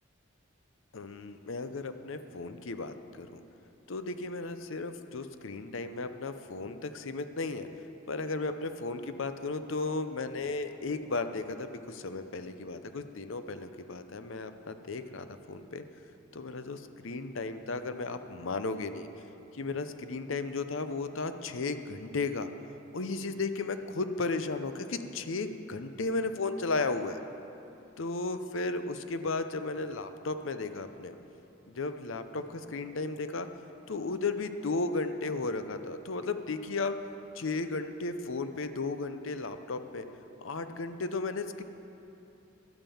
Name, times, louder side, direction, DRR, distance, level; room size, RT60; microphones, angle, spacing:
voice 1, 0.9-3.3 3.9-7.7 8.1-15.8 16.3-19.1 19.5-22.5 22.9-27.2 28.0-31.2 31.7-33.5 33.9-36.9 37.3-40.0 40.4-41.6, left 3 dB, 70° left, 10 dB, 0.7 m, -34 dB
12.0 x 9.0 x 7.0 m, 3.0 s
head